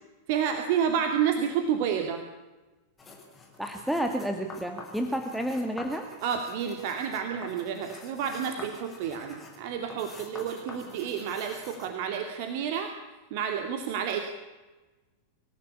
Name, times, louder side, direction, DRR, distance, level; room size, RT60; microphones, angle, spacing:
voice 1, 0.3-2.2 6.2-12.9 13.3-14.2, right 8 dB, 50° right, 5 dB, 2.5 m, -30 dB
sound 1, 3.0-11.9, left 3 dB, 15° left, 6.0 m, -47 dB
voice 2, 3.6-6.1, equal, ahead, 4 dB, 2.2 m, -30 dB
26.5 x 16.5 x 8.5 m, 1.2 s
figure-of-eight pair, 90°, 0 cm